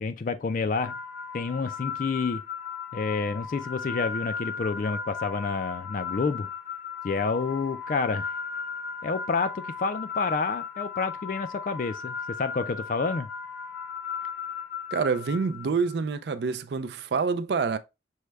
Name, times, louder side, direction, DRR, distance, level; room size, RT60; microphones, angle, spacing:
voice 1, 0.0-1.0 1.3-2.4 2.9-6.5 7.0-8.3 9.0-13.3, left 4 dB, 45° left, 0.3 m, -29 dB
sound 1, 0.8-16.0, left 6 dB, 75° left, 0.9 m, -36 dB
voice 2, 14.9-17.8, right 5 dB, 65° right, 0.4 m, -27 dB
6.2 x 2.2 x 3.3 m
head